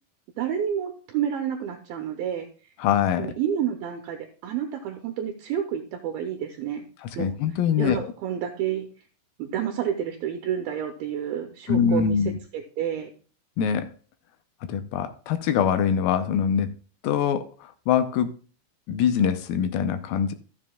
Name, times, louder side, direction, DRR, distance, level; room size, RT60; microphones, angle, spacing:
voice 1, 0.4-2.5 3.2-6.9 7.2-7.3 7.8-8.9 9.4-12.2 12.5-13.1, right 9 dB, 80° right, 5 dB, 2.6 m, -29 dB
voice 2, 2.8-3.3 7.2-8.1 11.7-12.4 13.6-13.9 14.7-16.7 17.0-18.3 18.9-20.3, left 8 dB, 80° left, 9 dB, 2.3 m, -23 dB
14.0 x 7.1 x 2.3 m, 0.38 s
omnidirectional pair, 4.4 m